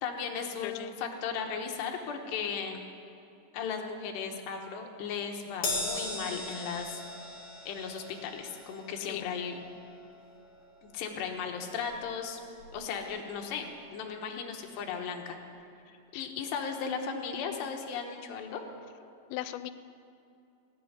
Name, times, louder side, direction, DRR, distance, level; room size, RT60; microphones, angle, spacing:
voice 1, 0.0-2.8 3.5-7.0 7.7-9.6 10.9-12.4 12.7-15.4 15.9-18.6, left 6 dB, 70° left, 3 dB, 3.0 m, -36 dB
voice 2, 0.6-1.0 9.0-9.3 16.1-16.3 19.3-19.7, left 14 dB, 90° left, 12 dB, 3.2 m, -38 dB
Crash cymbal, 5.6-12.3 12.6-12.8 13.9-14.0, left 2 dB, 40° left, 2.8 m, -39 dB
18.0 x 8.1 x 9.9 m, 2.7 s
omnidirectional pair, 5.6 m